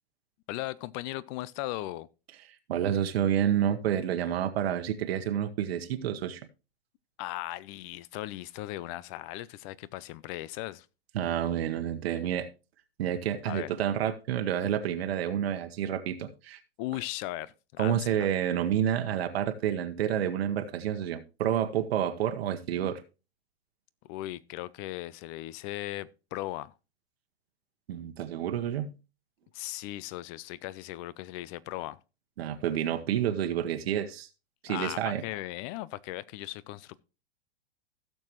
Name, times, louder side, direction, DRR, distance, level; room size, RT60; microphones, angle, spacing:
voice 1, 0.5-2.1 7.2-10.9 13.5-13.7 16.8-18.3 24.0-26.7 29.5-32.0 34.7-37.0, left 16 dB, 30° left, 0.5 m, -37 dB
voice 2, 2.7-6.4 11.1-12.5 13.0-16.6 17.8-23.0 27.9-28.9 32.4-34.3 34.6-35.2, right 10 dB, 65° right, 1.2 m, -29 dB
16.0 x 6.8 x 3.0 m
hypercardioid pair, 135°, 33 cm